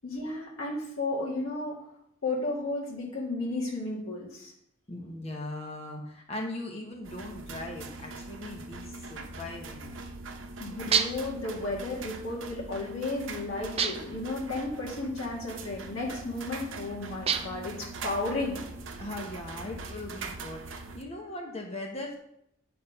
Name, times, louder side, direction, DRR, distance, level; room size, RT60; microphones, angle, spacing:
voice 1, 0.0-1.8 2.2-4.5 10.6-18.6, left 2 dB, 90° left, -4 dB, 2.1 m, -33 dB
voice 2, 4.9-10.0 19.0-22.2, left 1 dB, 30° left, 1 dB, 0.9 m, -39 dB
sound 1, 7.0-21.0, right 3 dB, 70° right, 0.8 m, -42 dB
sound 2, 10.9-11.4 13.8-14.2 17.3-17.7, right 7 dB, 30° right, 0.4 m, -28 dB
8.6 x 4.2 x 5.4 m, 0.76 s
head